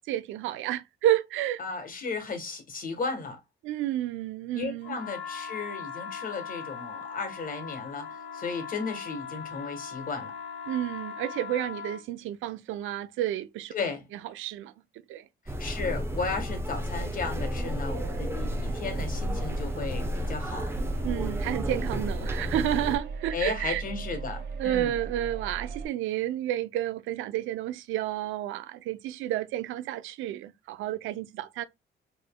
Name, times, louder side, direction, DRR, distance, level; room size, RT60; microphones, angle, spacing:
voice 1, 0.1-1.6 3.6-5.0 10.7-13.7 14.4-14.7 15.1-15.2 21.0-23.8 24.6-31.6, right 13 dB, 90° right, 0.5 m, -30 dB
voice 2, 1.6-3.4 4.5-10.3 13.7-14.1 15.4-20.8 23.3-24.9, left 4 dB, 45° left, 1.3 m, -35 dB
sound 1, 4.8-12.0, left 6 dB, 75° left, 1.0 m, -40 dB
sound 2, 15.5-23.0, equal, 10° right, 0.8 m, -32 dB
sound 3, 17.9-25.9, right 5 dB, 60° right, 1.4 m, -38 dB
4.8 x 3.1 x 2.2 m
cardioid pair, 90°, 20 cm